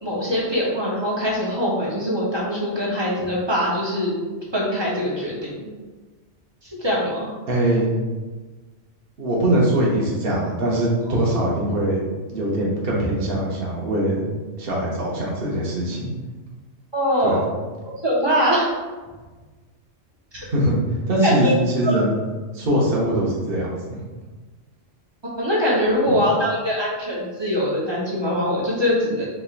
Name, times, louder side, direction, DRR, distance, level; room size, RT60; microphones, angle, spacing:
voice 1, 0.0-4.2 4.5-5.7 6.8-7.3 16.9-17.4 18.0-18.7 21.2-21.5 21.8-22.0 25.4-29.3, equal, 25° right, -5 dB, 0.8 m, -22 dB
voice 2, 7.5-7.9 9.2-12.0 12.3-14.2 14.6-16.1 17.2-17.5 20.3-20.7 21.1-22.1 22.5-24.0, right 1 dB, 50° right, -4 dB, 1.0 m, -22 dB
4.3 x 3.2 x 2.4 m, 1.3 s
omnidirectional pair, 1.3 m